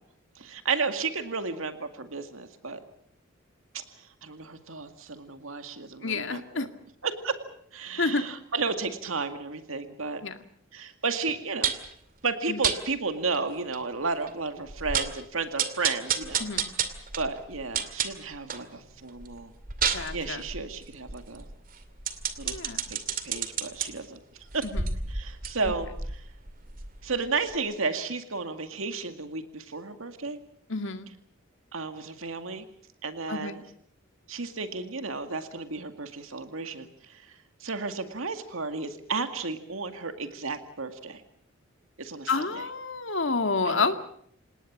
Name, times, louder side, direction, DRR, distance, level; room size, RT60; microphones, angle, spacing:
voice 1, 0.4-2.8 3.7-3.8 4.2-6.7 7.0-7.4 7.7-10.2 10.7-11.8 12.2-16.5 17.2-19.5 19.9-21.5 22.4-22.6 22.9-24.2 24.5-24.6 25.1-25.9 27.0-30.4 31.7-32.7 33.0-33.6 34.3-37.4 37.6-41.2 42.0-42.6 43.7-43.9, right 4 dB, 85° right, 8 dB, 2.1 m, -33 dB
voice 2, 6.0-6.7 8.0-8.3 10.2-10.4 12.5-12.6 16.4-16.7 19.9-20.4 22.4-22.8 24.6-24.8 25.6-25.7 30.7-31.1 33.3-33.6 42.3-44.1, left 4 dB, 65° left, 8 dB, 2.1 m, -29 dB
sound 1, 11.6-11.9 12.6-12.8 13.3-13.4 13.7-13.8 14.3-14.4 14.7-15.2 15.6-18.7 19.1-23.9 24.5-27.2 27.5-27.6, right 7 dB, 45° right, 2.4 m, -31 dB
27.5 x 19.0 x 7.4 m, 0.65 s
head